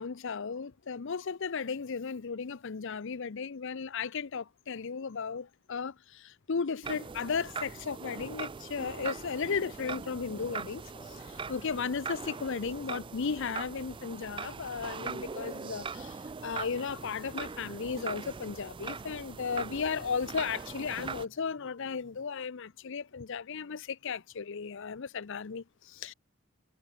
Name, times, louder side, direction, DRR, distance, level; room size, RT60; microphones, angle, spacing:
voice 1, 0.0-26.1, left 5 dB, 60° left, 0.6 m, -35 dB
sound 1, 6.8-21.3, right 5 dB, 25° right, 0.4 m, -41 dB
sound 2, 10.9-22.3, left 1 dB, 25° left, 3.2 m, -61 dB
head